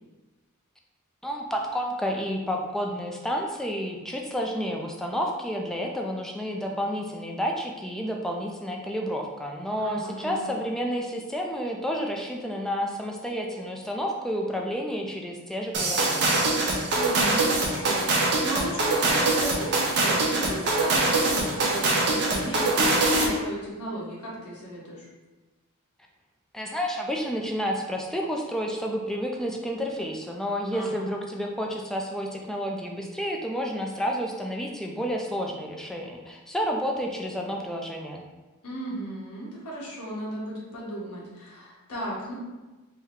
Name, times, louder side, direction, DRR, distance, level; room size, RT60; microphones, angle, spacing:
voice 1, 1.2-16.4 26.5-38.2, equal, ahead, 0 dB, 0.4 m, -30 dB
voice 2, 9.8-10.6 16.9-25.1 30.7-31.1 38.6-42.3, equal, 75° left, -6 dB, 1.3 m, -35 dB
sound 1, 15.7-23.4, right 2 dB, 50° right, 0.7 m, -23 dB
4.4 x 2.2 x 3.6 m, 1.2 s
head